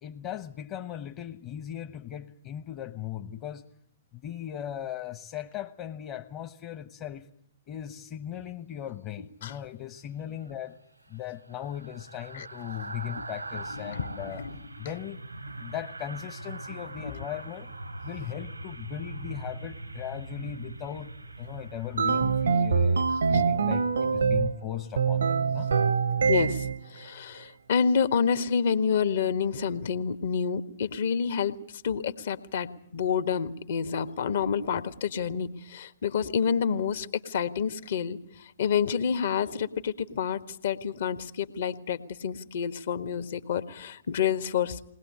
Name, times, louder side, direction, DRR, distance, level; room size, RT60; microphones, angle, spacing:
voice 1, 0.0-3.6 4.1-7.3 7.7-10.8 11.1-14.4 14.8-15.2 15.6-17.7 18.0-25.7, left 11 dB, 35° left, 7 dB, 1.1 m, -38 dB
sound 1, 10.4-23.7 24.1-24.3, right 2 dB, 90° right, 1.2 m, -42 dB
voice 2, 13.8-14.5 17.0-17.1 26.3-26.7 26.9-44.8, left 7 dB, 55° left, 11 dB, 1.4 m, -28 dB
sound 2, 22.0-24.6 25.0-26.8, right 5 dB, 70° right, 0.9 m, -24 dB
21.0 x 20.0 x 8.6 m, 0.71 s
figure-of-eight pair, 115°, 0 cm